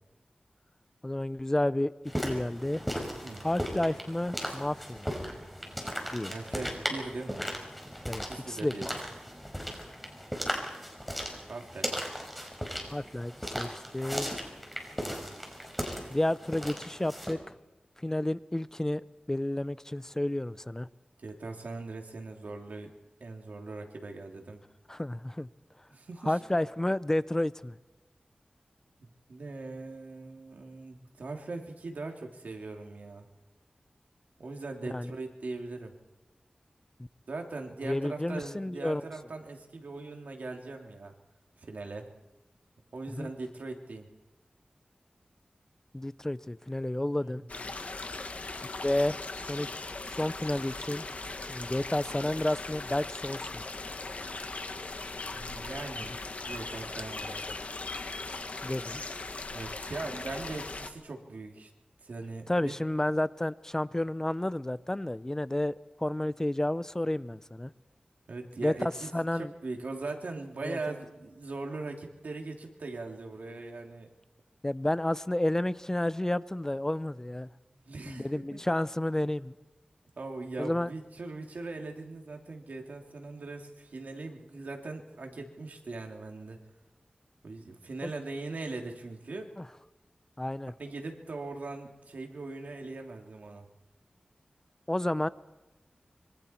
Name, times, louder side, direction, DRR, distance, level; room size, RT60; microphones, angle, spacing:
voice 1, 1.0-1.9 2.2-2.9 3.4-5.1 6.1-6.3 8.1-8.8 12.9-14.4 16.1-17.5 18.0-20.9 24.9-25.5 26.3-27.8 34.9-35.1 37.8-39.0 43.1-43.3 45.9-47.4 48.8-49.2 49.5-49.7 50.1-51.0 51.5-53.6 58.6-59.0 62.5-67.7 68.6-69.5 70.6-71.0 74.6-77.5 78.1-79.5 80.6-80.9 88.0-88.1 90.4-90.7 94.9-95.3, left 1 dB, 20° left, 16 dB, 0.6 m, -31 dB
sound 1, 2.1-17.3, equal, ahead, 5.2 m, -37 dB
voice 2, 6.3-7.4 8.3-8.9 10.6-10.9 11.5-12.0 15.0-15.4 21.2-22.9 23.2-24.6 25.9-26.4 29.0-33.2 34.4-36.0 37.3-41.1 41.6-42.1 42.9-44.1 47.3-47.4 55.3-56.1 56.4-57.6 59.5-61.7 62.0-62.7 68.3-69.1 69.3-74.1 77.7-78.6 80.2-86.6 87.4-89.5 90.8-93.7, right 3 dB, 85° right, 2 dB, 2.9 m, -40 dB
sound 2, 47.5-60.9, left 3 dB, 60° left, 1.6 m, -39 dB
26.0 x 25.0 x 4.5 m, 1.1 s
wide cardioid pair, 70°, 3 cm